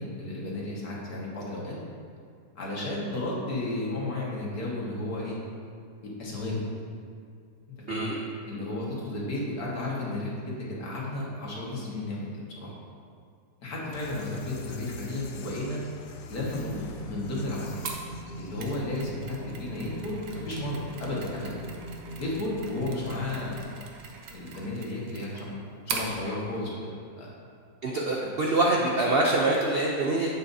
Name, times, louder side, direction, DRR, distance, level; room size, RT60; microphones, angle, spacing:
voice 1, 0.0-1.8 2.6-5.4 6.2-6.6 7.9-8.1 8.4-12.7 13.6-15.8 16.3-17.8 18.4-21.6 22.2-23.9 24.3-25.6 25.9-26.9 27.2-27.3 28.2-28.3, left 2 dB, 60° left, -5 dB, 2.1 m, -33 dB
voice 2, 7.9-8.2 27.8-30.3, right 2 dB, 60° right, -2 dB, 0.6 m, -25 dB
sound 1, 13.9-18.7, left 3 dB, 80° left, 1.2 m, -44 dB
sound 2, 16.3-23.6, right 1 dB, ahead, 1.8 m, -41 dB
Mechanisms, 17.8-26.1, right 5 dB, 75° right, 1.4 m, -41 dB
9.3 x 7.7 x 2.7 m, 2.3 s
omnidirectional pair, 1.8 m